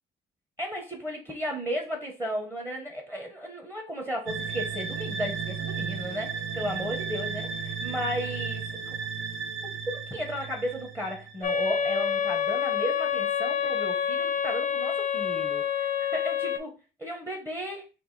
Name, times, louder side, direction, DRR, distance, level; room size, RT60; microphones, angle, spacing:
voice 1, 0.6-8.9 9.9-16.7 17.0-17.9, equal, 15° right, 0 dB, 1.2 m, -34 dB
sound 1, 4.3-11.8, right 6 dB, 75° right, 0.7 m, -34 dB
sound 2, 11.4-16.6, left 8 dB, 40° left, 0.6 m, -27 dB
3.5 x 2.7 x 4.2 m, 0.30 s
cardioid pair, 90°, 20 cm